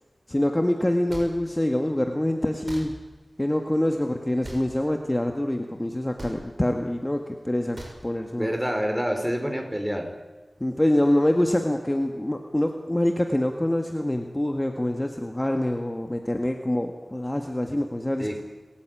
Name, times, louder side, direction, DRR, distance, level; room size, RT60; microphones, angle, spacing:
voice 1, 0.3-2.9 3.4-7.8 8.0-8.5 10.6-18.4, left 1 dB, 20° left, 4 dB, 1.7 m, -25 dB
sound 1, 1.1-1.3 2.6-2.8 4.4-4.6 6.2-6.4 7.8-8.0, right 1 dB, 50° right, 6.3 m, -38 dB
voice 2, 8.4-10.1 18.2-18.4, equal, 10° right, 5 dB, 4.6 m, -27 dB
28.5 x 13.5 x 9.1 m, 1.2 s
wide cardioid pair, 45°, 0 cm